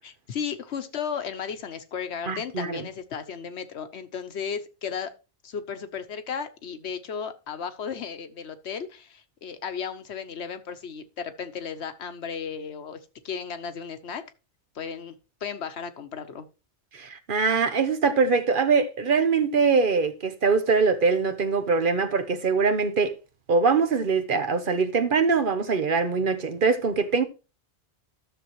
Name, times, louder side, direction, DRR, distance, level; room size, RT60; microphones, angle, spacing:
voice 1, 0.0-5.1 5.4-13.0 13.2-14.2 14.7-15.2 15.4-16.5, left 6 dB, 75° left, 1.2 m, -34 dB
voice 2, 2.3-2.8 16.9-23.1 23.5-27.2, right 5 dB, 55° right, 1.0 m, -23 dB
12.5 x 7.0 x 3.0 m
omnidirectional pair, 1.1 m